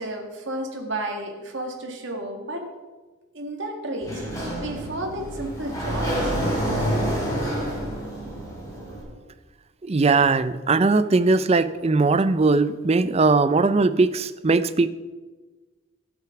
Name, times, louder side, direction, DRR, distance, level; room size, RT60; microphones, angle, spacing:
voice 1, 0.0-2.6 3.3-4.2 4.6-6.4, right 1 dB, 60° right, 2 dB, 1.9 m, -32 dB
Sliding door, 4.0-9.0, equal, 15° left, 4.5 m, -28 dB
voice 2, 9.8-14.9, right 3 dB, 30° right, 13 dB, 0.5 m, -20 dB
12.5 x 8.9 x 5.9 m, 1.3 s
head